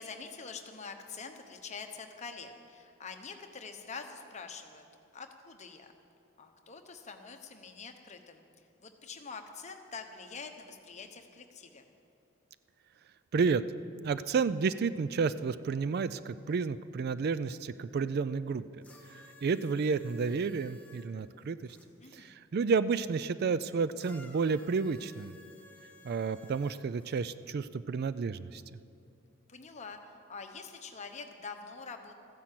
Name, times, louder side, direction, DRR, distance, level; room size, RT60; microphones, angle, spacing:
voice 1, 0.0-4.8 5.1-5.9 6.4-11.8 22.0-22.3 29.5-30.0 30.3-32.1, left 5 dB, 35° left, 5 dB, 1.0 m, -45 dB
voice 2, 13.3-13.6 14.0-18.8 19.4-21.6 22.1-25.3 26.0-28.6, right 5 dB, 50° right, 15 dB, 0.3 m, -31 dB
sound 1, 18.8-21.9 24.0-27.2 28.2-28.3, left 2 dB, 10° left, 1.4 m, -56 dB
14.0 x 10.0 x 7.6 m, 2.5 s
head